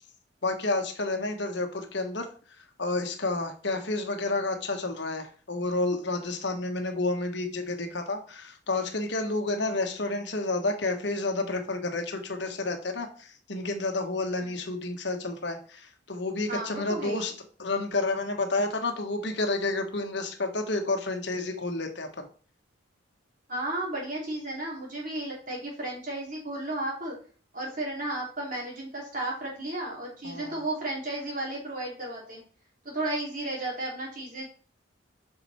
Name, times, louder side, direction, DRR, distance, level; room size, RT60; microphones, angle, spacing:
voice 1, 0.4-2.3 2.8-17.3 17.6-22.3 30.2-30.6, left 2 dB, 65° left, 5 dB, 1.4 m, -30 dB
voice 2, 16.5-17.4 23.5-27.2 27.5-32.4 32.8-34.5, right 1 dB, 40° right, -3 dB, 3.7 m, -34 dB
7.9 x 5.9 x 4.4 m, 0.42 s
head